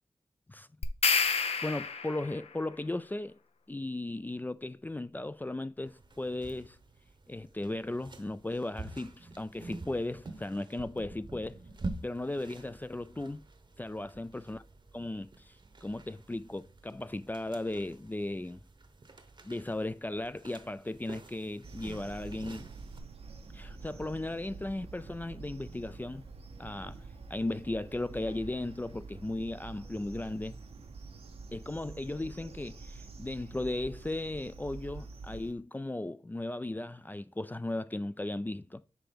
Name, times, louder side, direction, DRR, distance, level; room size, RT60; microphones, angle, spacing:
sound 1, 0.8-2.4, left 5 dB, 80° left, 0.6 m, -29 dB
voice 1, 1.6-3.4 3.7-6.8 7.3-11.6 12.0-13.4 13.8-14.6 14.9-15.6 15.8-18.6 19.4-22.7 23.5-26.3 26.6-27.0 27.3-30.6 31.5-38.9, left 2 dB, 15° left, 0.3 m, -36 dB
sound 2, 5.9-23.0, right 2 dB, 50° right, 0.9 m, -47 dB
sound 3, 21.6-35.5, right 4 dB, 75° right, 0.8 m, -47 dB
5.9 x 3.4 x 5.1 m
cardioid pair, 55°, 10 cm